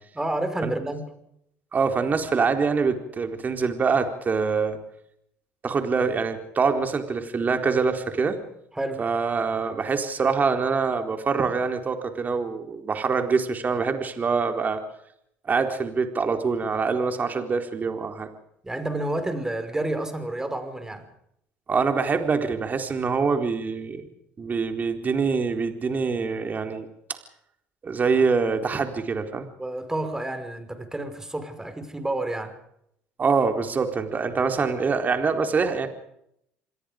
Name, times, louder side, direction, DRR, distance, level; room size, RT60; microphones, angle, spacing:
voice 1, 0.1-1.1 8.7-9.1 18.6-21.1 29.6-32.6, right 1 dB, 10° right, 9 dB, 5.5 m, -30 dB
voice 2, 1.7-4.8 5.6-8.4 9.0-14.8 15.5-18.3 21.7-24.1 24.4-26.9 27.8-29.5 33.2-35.9, right 5 dB, 35° right, 6 dB, 4.1 m, -24 dB
27.5 x 21.5 x 5.2 m, 0.75 s
supercardioid pair, 75°, 5 cm